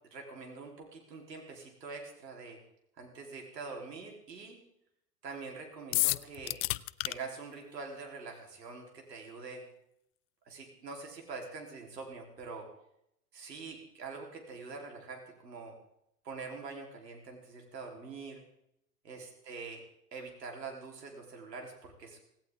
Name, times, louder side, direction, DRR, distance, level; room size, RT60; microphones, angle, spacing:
voice 1, 0.1-2.6 3.0-4.6 5.2-6.6 7.0-9.6 10.4-12.7 13.3-15.7 16.2-18.4 19.0-19.8 20.1-22.2, right 4 dB, 85° right, 1 dB, 3.9 m, -44 dB
sound 1, 5.9-7.1, left 23 dB, 45° left, 0.6 m, -29 dB
17.5 x 17.5 x 3.7 m, 0.76 s
hypercardioid pair, 95°, 48 cm